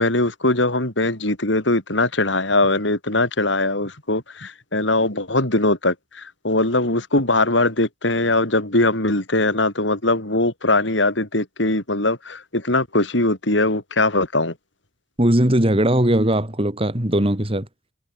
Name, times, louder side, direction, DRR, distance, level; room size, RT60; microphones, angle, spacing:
voice 1, 0.0-14.5, left 2 dB, 70° left, 5.3 m, -21 dB
voice 2, 15.2-17.7, right 1 dB, 30° right, 3.1 m, -19 dB
head